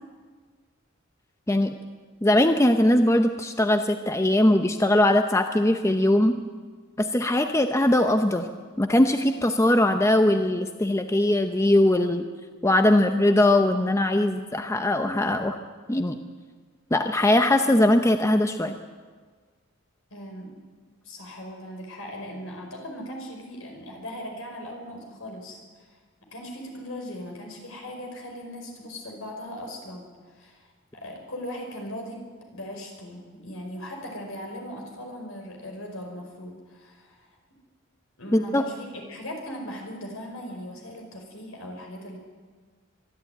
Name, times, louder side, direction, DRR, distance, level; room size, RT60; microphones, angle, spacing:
voice 1, 2.2-6.4 7.0-8.5 8.8-12.2 12.6-15.6 15.9-16.2 16.9-18.7 38.3-38.6, left 1 dB, 15° left, 7 dB, 0.7 m, -21 dB
voice 2, 20.1-20.6 21.0-26.0 26.3-37.4 38.2-42.2, equal, 70° left, 2 dB, 5.1 m, -39 dB
24.0 x 12.0 x 9.2 m, 1.5 s
head